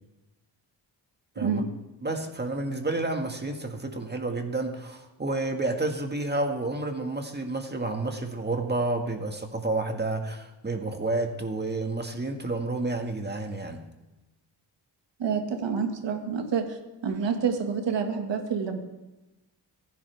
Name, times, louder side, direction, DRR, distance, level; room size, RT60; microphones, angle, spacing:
voice 1, 2.0-13.8, right 2 dB, 25° right, 4 dB, 1.9 m, -30 dB
voice 2, 15.2-16.8 17.0-18.8, right 6 dB, 75° right, 4 dB, 2.0 m, -28 dB
25.0 x 11.0 x 3.5 m, 1.0 s
cardioid pair, 85°, 43 cm